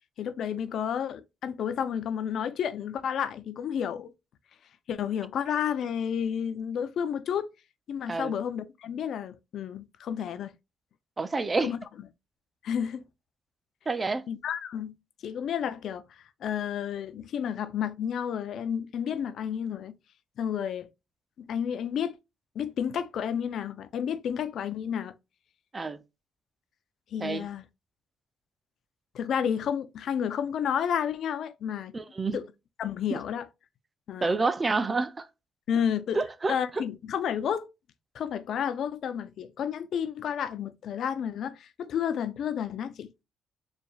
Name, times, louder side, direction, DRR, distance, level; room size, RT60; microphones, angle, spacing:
voice 1, 0.2-4.1 4.9-7.5 7.9-10.5 11.6-11.8 12.6-13.0 14.3-14.9 15.2-16.0 16.4-20.0 20.4-20.9 21.4-22.2 22.6-25.1 27.1-27.6 29.1-31.9 32.3-32.4 32.8-33.5 34.1-34.4 35.7-36.2 36.5-37.7 38.1-43.1, left 8 dB, 70° left, 0.4 m, -31 dB
voice 2, 11.2-11.7 13.9-14.3 25.7-26.0 27.2-27.5 31.9-32.4 34.2-35.3 36.1-36.6, right 3 dB, 25° right, 0.5 m, -28 dB
4.4 x 3.4 x 2.3 m
cardioid pair, 90°, 0 cm